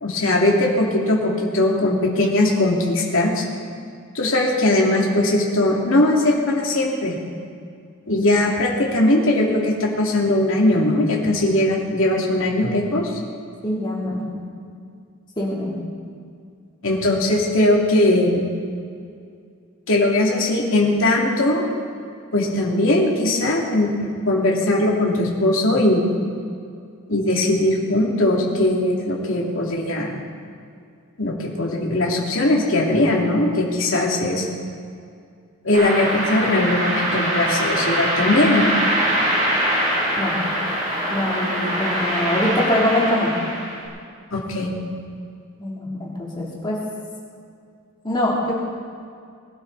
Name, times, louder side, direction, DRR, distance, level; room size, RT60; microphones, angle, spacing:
voice 1, 0.0-3.4 4.1-7.2 8.1-13.0 16.8-18.5 19.9-21.6 22.3-26.0 27.1-30.2 31.2-34.5 35.6-38.7 44.3-44.7, left 1 dB, 70° left, -2 dB, 2.7 m, -19 dB
voice 2, 13.6-14.3 15.4-15.7 40.2-40.3 41.1-43.3 45.6-46.8 48.0-48.6, left 1 dB, 20° left, -5 dB, 3.1 m, -23 dB
sound 1, 35.7-43.8, right 1 dB, 40° right, 4.7 m, -23 dB
22.0 x 12.5 x 4.1 m, 2.3 s
head